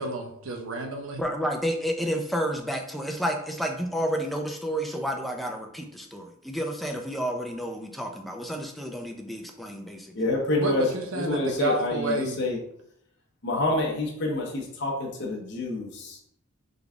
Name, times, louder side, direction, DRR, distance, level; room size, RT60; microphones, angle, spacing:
voice 1, 0.0-1.2 10.6-12.4, right 2 dB, 75° right, 2 dB, 0.8 m, -30 dB
voice 2, 1.2-10.1, equal, ahead, 2 dB, 0.5 m, -30 dB
voice 3, 10.1-12.6 13.4-16.2, left 2 dB, 55° left, -1 dB, 0.9 m, -28 dB
3.9 x 3.6 x 3.5 m, 0.73 s
head